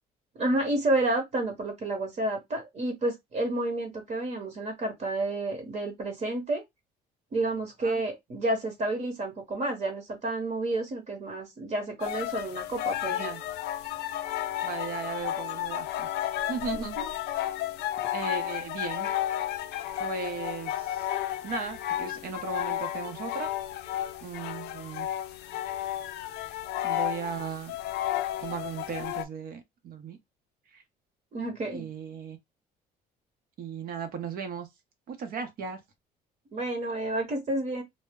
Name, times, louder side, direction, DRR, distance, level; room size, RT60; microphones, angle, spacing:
voice 1, 0.4-6.6 7.3-13.3 16.7-17.1 31.3-31.9 36.5-37.8, right 2 dB, 45° right, 1.0 m, -30 dB
sound 1, 12.0-29.2, left 12 dB, 80° left, 0.4 m, -32 dB
voice 2, 13.0-13.4 14.6-16.1 16.5-17.0 18.1-19.1 20.0-21.1 21.4-23.5 24.2-25.1 26.8-27.8 28.4-30.2 30.7-30.8 31.7-32.4 33.6-34.7 35.1-35.8, right 6 dB, 60° right, 0.8 m, -36 dB
2.1 x 2.1 x 3.5 m
cardioid pair, 110°, 17 cm